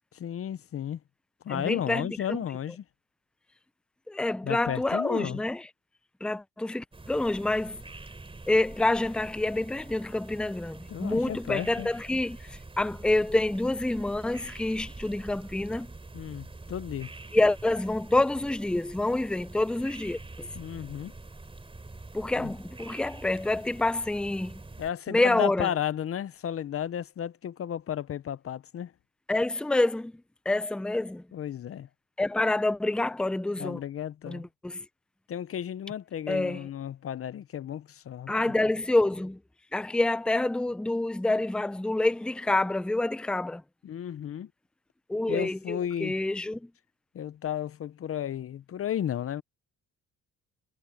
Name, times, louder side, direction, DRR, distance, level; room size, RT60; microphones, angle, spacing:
voice 1, 0.1-1.0 1.4-2.8 4.4-5.4 10.9-11.9 16.1-17.1 20.5-21.1 22.4-22.5 24.8-28.9 31.3-31.9 33.6-34.4 35.3-38.5 43.8-44.5 45.3-46.1 47.1-49.4, left 10 dB, 50° left, 0.7 m, -33 dB
voice 2, 1.5-2.4 4.1-5.7 6.2-7.8 8.5-15.9 17.3-20.5 22.1-24.6 25.1-25.7 29.3-30.1 30.5-31.2 32.2-33.8 34.3-34.8 36.3-36.7 38.3-39.4 39.7-43.6 45.1-46.7, left 2 dB, 5° left, 0.6 m, -27 dB
sound 1, 6.9-24.9, right 2 dB, 20° right, 3.7 m, -45 dB
cardioid pair, 90°, 30 cm